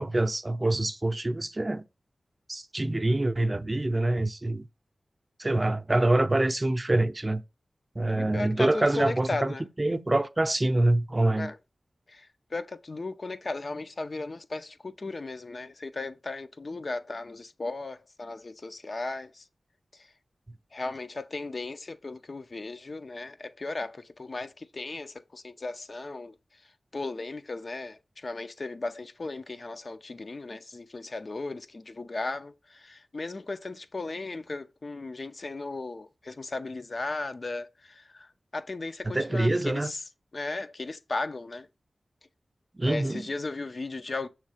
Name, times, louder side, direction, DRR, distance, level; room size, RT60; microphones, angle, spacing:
voice 1, 0.0-1.8 2.5-4.7 5.4-7.4 8.0-11.5 39.1-39.9 42.7-43.3, right 2 dB, 30° right, 0.6 m, -25 dB
voice 2, 8.2-9.6 11.4-11.6 12.1-19.4 20.7-26.3 26.9-40.0 40.3-41.7 42.9-44.3, left 3 dB, 55° left, 0.6 m, -36 dB
6.5 x 3.2 x 4.9 m
cardioid pair, 45°, 0 cm